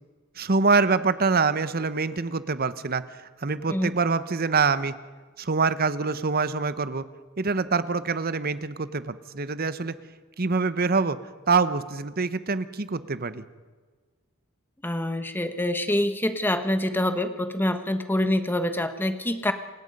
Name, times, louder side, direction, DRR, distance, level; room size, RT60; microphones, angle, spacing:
voice 1, 0.4-4.9 5.4-7.0 7.4-9.9 10.4-11.2 11.5-13.4, right 4 dB, 45° right, 14 dB, 0.9 m, -25 dB
voice 2, 14.8-19.5, left 1 dB, 10° left, 9 dB, 1.3 m, -26 dB
29.0 x 17.5 x 5.4 m, 1.4 s
head